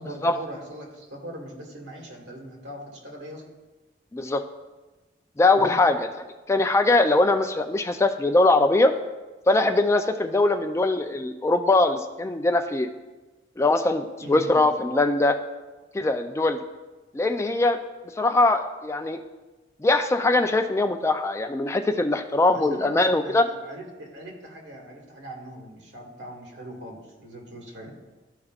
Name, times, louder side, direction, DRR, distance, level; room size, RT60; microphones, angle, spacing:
voice 1, 0.0-3.4 5.5-5.7 14.2-14.7 22.5-28.0, right 1 dB, 80° right, 0 dB, 1.7 m, -40 dB
voice 2, 4.1-4.4 5.4-6.0 6.5-8.9 9.5-12.9 13.6-15.4 15.9-16.6 17.1-17.8 18.2-19.2 19.8-23.5, left 2 dB, 15° left, 7 dB, 0.3 m, -21 dB
13.0 x 4.9 x 2.4 m, 1.2 s
head